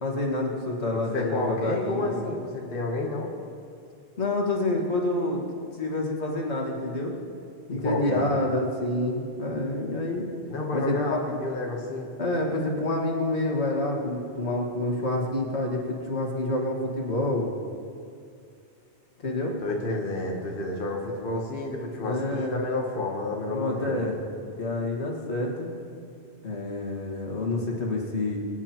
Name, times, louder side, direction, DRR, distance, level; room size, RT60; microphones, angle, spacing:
voice 1, 0.0-2.2 4.2-5.4 5.7-7.1 7.7-10.3 10.7-11.2 12.2-17.5 19.2-19.5 22.0-22.6 23.5-24.2 24.6-25.7 26.4-28.4, left 2 dB, 85° left, -1 dB, 2.2 m, -28 dB
voice 2, 0.9-3.3 7.7-8.3 10.5-12.1 19.6-24.0, left 2 dB, 55° left, -1 dB, 1.3 m, -30 dB
24.5 x 9.6 x 3.0 m, 2.4 s
omnidirectional pair, 1.1 m